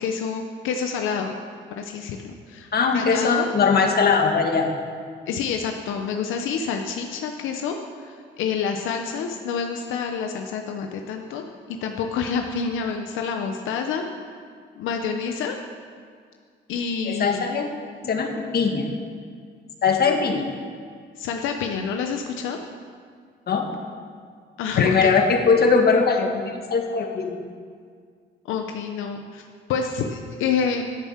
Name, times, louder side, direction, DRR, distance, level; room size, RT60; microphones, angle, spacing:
voice 1, 0.0-1.4 1.7-2.7 2.9-3.5 5.3-14.0 14.8-15.6 16.7-17.4 21.2-22.6 24.6-25.1 28.4-30.8, left 6 dB, 90° left, 4 dB, 0.8 m, -28 dB
voice 2, 2.7-4.7 17.0-17.6 18.0-18.9 19.8-20.4 23.5-23.7 24.8-27.4, left 5 dB, 50° left, 3 dB, 1.7 m, -20 dB
12.0 x 7.2 x 7.3 m, 2.1 s
cardioid pair, 90°, 20 cm